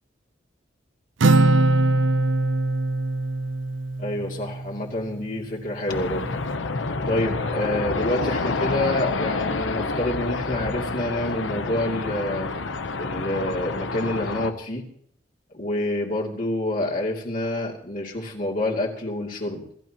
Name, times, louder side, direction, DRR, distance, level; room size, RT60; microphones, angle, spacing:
Acoustic guitar, 1.2-4.9, right 2 dB, 80° right, 0.5 m, -21 dB
voice 1, 4.0-6.3 7.1-12.5 13.0-14.8 15.5-19.6, left 1 dB, 45° left, -1 dB, 2.8 m, -27 dB
sound 1, 5.9-14.5, left 3 dB, 85° left, 0.9 m, -28 dB
27.0 x 14.5 x 3.0 m, 0.66 s
head